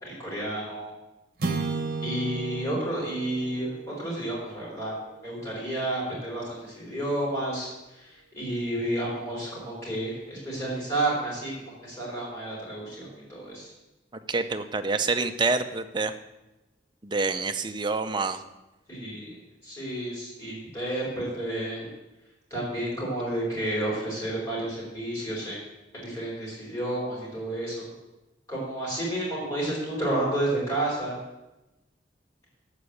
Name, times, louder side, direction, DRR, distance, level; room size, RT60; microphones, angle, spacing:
voice 1, 0.0-0.9 2.0-4.9 5.2-11.5 11.8-13.7 18.9-19.3 19.6-21.9 22.5-25.6 25.9-27.9 28.5-31.1, right 1 dB, 15° left, -7 dB, 4.7 m, -31 dB
sound 1, 1.4-5.9, right 4 dB, 55° right, 1.3 m, -35 dB
voice 2, 14.3-16.2 17.0-18.4, right 3 dB, 25° right, 8 dB, 0.6 m, -27 dB
13.0 x 4.9 x 8.4 m, 1.0 s
head